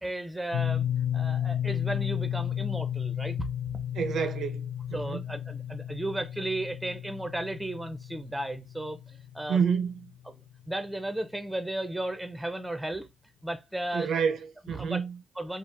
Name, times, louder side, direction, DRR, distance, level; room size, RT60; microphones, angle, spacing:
voice 1, 0.0-0.9 1.1-3.4 4.9-9.6 10.7-13.1 13.4-14.3 14.7-15.0 15.4-15.6, right 1 dB, 5° right, 0.5 m, -34 dB
sound 1, 0.5-10.4, left 10 dB, 85° left, 0.3 m, -33 dB
voice 2, 3.9-5.2 9.5-10.1 13.9-15.2, right 6 dB, 75° right, 0.4 m, -29 dB
3.3 x 2.0 x 2.6 m
cardioid pair, 90°, 0 cm